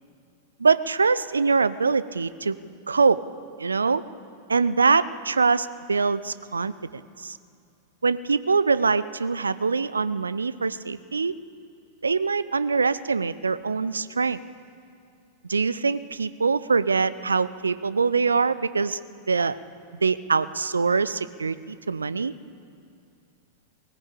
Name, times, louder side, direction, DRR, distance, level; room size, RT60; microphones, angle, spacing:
voice 1, 0.6-2.6 2.9-3.2 3.6-4.0 4.5-7.4 8.0-11.3 12.0-14.4 15.5-19.0 19.3-19.6 20.0-22.3, right 4 dB, 75° right, 16 dB, 0.5 m, -23 dB
19.5 x 15.5 x 8.6 m, 2.4 s
figure-of-eight pair, 90°, 0 cm